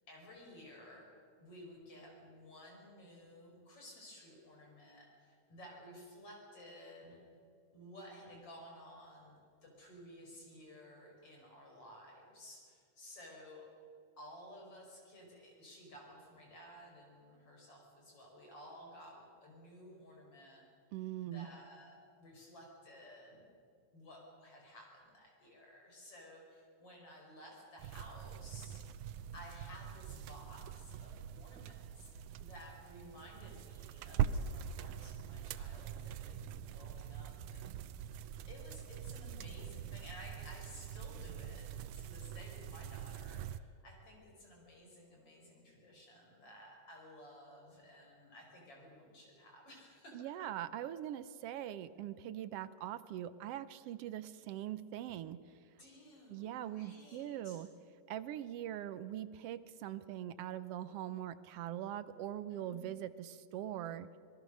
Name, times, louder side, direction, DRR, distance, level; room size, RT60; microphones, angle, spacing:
voice 1, 0.1-1.1 1.4-7.2 7.7-13.7 14.2-20.7 21.2-23.4 23.9-28.8 29.3-32.1 32.4-41.7 41.9-50.2 55.8-57.6 62.5-62.9, equal, 50° left, 0 dB, 5.8 m, -55 dB
voice 2, 20.9-21.5 50.1-55.4 56.3-57.7 58.1-64.1, right 11 dB, 75° right, 13 dB, 1.4 m, -42 dB
sound 1, 27.8-43.6, right 9 dB, 90° right, 2.2 m, -43 dB
26.5 x 18.5 x 6.5 m, 2.4 s
omnidirectional pair, 3.4 m